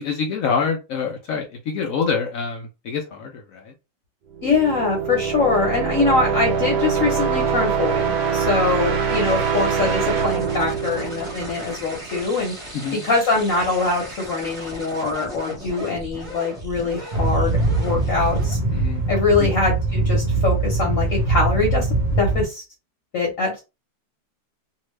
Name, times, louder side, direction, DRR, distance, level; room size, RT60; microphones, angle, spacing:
voice 1, 0.0-3.7 12.7-13.0 18.7-19.0 19.4-19.5, left 5 dB, 75° left, 2 dB, 0.8 m, -26 dB
sound 1, 4.3-12.1, right 6 dB, 70° right, 1.1 m, -24 dB
voice 2, 4.4-12.5 13.0-18.6 19.1-21.9 22.2-22.6 23.1-23.6, left 3 dB, 55° left, -1 dB, 1.1 m, -23 dB
sound 2, 9.1-18.5, equal, 20° right, 1.0 m, -36 dB
sound 3, 17.1-22.4, right 2 dB, 45° right, 0.6 m, -22 dB
2.8 x 2.6 x 3.1 m, 0.27 s
omnidirectional pair, 2.0 m